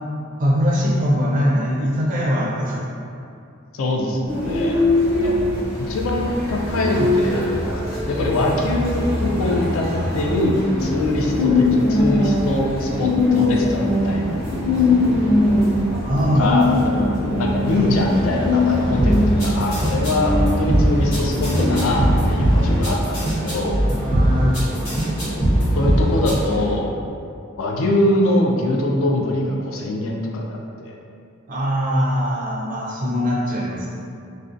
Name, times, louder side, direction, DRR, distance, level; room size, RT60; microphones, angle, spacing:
voice 1, 0.4-2.8 16.0-16.5 23.8-24.7 31.5-33.9, equal, 40° right, -4 dB, 0.4 m, -21 dB
voice 2, 3.7-4.8 5.1-9.9 10.1-14.4 16.3-16.7 17.4-23.8 25.8-26.9 27.6-30.9, left 1 dB, 70° left, 0 dB, 0.3 m, -23 dB
sound 1, 4.3-22.8, left 2 dB, 45° left, 1.1 m, -21 dB
sound 2, 17.6-26.7, equal, 25° left, 0.7 m, -31 dB
sound 3, 19.0-26.3, right 1 dB, 90° left, 1.1 m, -19 dB
2.5 x 2.1 x 2.4 m, 2.5 s
head